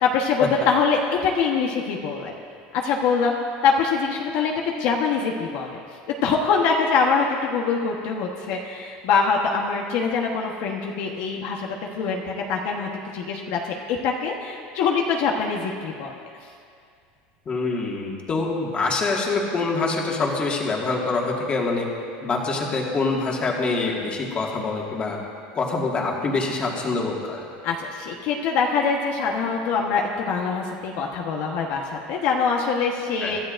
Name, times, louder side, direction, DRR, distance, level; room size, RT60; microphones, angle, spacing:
voice 1, 0.0-2.3 2.7-3.4 3.6-5.8 6.2-11.7 11.9-16.1 27.6-33.4, left 5 dB, 55° left, 0 dB, 1.2 m, -24 dB
voice 2, 17.5-21.9 22.2-25.2 25.5-27.5 33.2-33.4, left 3 dB, 25° left, -1 dB, 1.9 m, -25 dB
25.5 x 12.5 x 2.6 m, 2.3 s
supercardioid pair, 155°, 5 cm